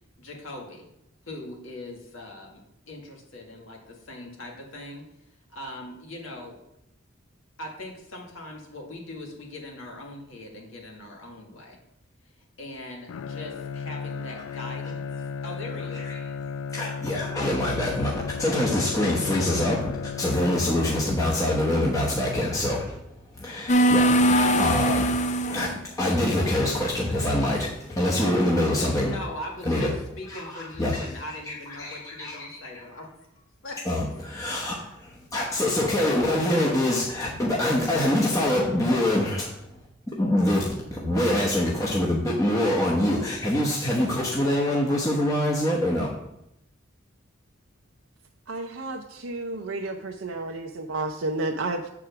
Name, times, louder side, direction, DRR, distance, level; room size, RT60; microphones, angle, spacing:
voice 1, 0.2-0.9 1.2-2.6 2.9-6.6 7.6-11.8 12.2-15.0 15.4-16.0 29.0-33.1 33.6-33.8, left 1 dB, 75° left, 0 dB, 1.9 m, -40 dB
Bowed string instrument, 13.1-21.4, left 6 dB, 90° left, 0.4 m, -35 dB
voice 2, 15.8-16.3 16.7-19.8 20.2-29.2 29.6-29.9 30.3-33.0 33.8-40.6 40.9-46.2, left 1 dB, 15° left, -3 dB, 0.9 m, -25 dB
sound 1, 23.7-25.8, right 1 dB, 35° left, 0.5 m, -21 dB
voice 3, 48.5-51.9, right 2 dB, 70° right, 2 dB, 0.6 m, -31 dB
7.7 x 4.8 x 5.8 m, 0.83 s
head